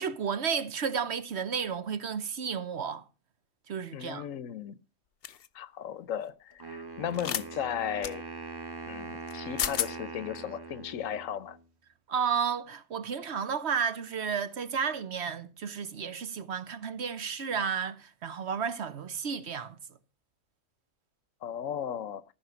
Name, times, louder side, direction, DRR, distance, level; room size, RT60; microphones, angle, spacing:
voice 1, 0.0-3.0 3.7-4.3 12.1-19.8, right 6 dB, 55° right, 1.2 m, -32 dB
voice 2, 3.9-4.8 5.5-8.3 8.8-11.6 21.4-22.2, left 9 dB, 75° left, 1.1 m, -36 dB
sound 1, 5.2-5.5 7.1-7.4 8.0-8.1 9.3-9.4 9.6-9.9, left 9 dB, 50° left, 0.8 m, -31 dB
Wind instrument woodwind instrument, 6.6-11.6, right 4 dB, 15° right, 1.4 m, -42 dB
14.5 x 6.1 x 6.8 m
omnidirectional pair, 1.4 m